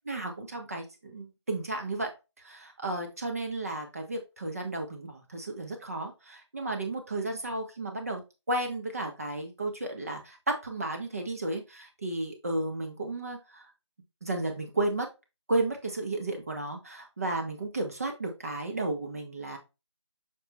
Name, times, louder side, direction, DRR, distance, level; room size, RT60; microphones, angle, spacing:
voice 1, 0.1-2.1 2.4-8.2 8.5-13.7 14.2-15.1 15.5-19.6, right 2 dB, 30° right, 3 dB, 1.8 m, -33 dB
6.8 x 5.3 x 2.7 m, 0.26 s
figure-of-eight pair, 170°, 16 cm